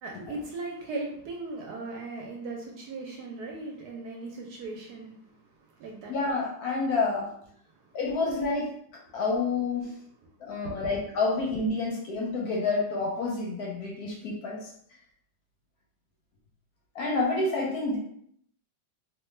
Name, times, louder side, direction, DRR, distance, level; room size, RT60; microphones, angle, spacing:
voice 1, 0.0-5.4 5.7-6.1 7.8-7.9 10.6-10.8, right 3 dB, 70° right, -1 dB, 1.0 m, -38 dB
voice 2, 6.1-7.3 7.9-8.7 9.1-9.9 10.4-14.7 16.9-18.0, left 3 dB, 70° left, -2 dB, 1.0 m, -28 dB
3.1 x 2.2 x 3.2 m, 0.66 s
omnidirectional pair, 2.0 m